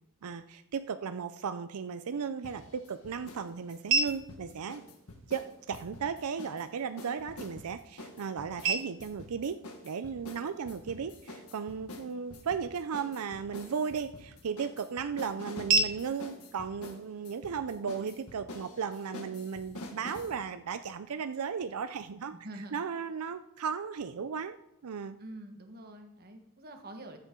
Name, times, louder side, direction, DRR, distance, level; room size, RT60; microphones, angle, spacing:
voice 1, 0.2-4.8 5.3-9.6 9.8-22.3 22.7-24.6 24.8-25.2, right 6 dB, 85° right, 10 dB, 0.5 m, -35 dB
sound 1, 2.1-18.1, right 4 dB, 60° right, 1.0 m, -38 dB
sound 2, 2.4-3.4 3.7-6.6 7.0-20.3, left 1 dB, 85° left, 1.7 m, -47 dB
voice 2, 22.3-22.8 25.2-27.2, right 1 dB, 45° right, 5 dB, 1.4 m, -46 dB
14.0 x 8.1 x 3.8 m, 0.81 s
head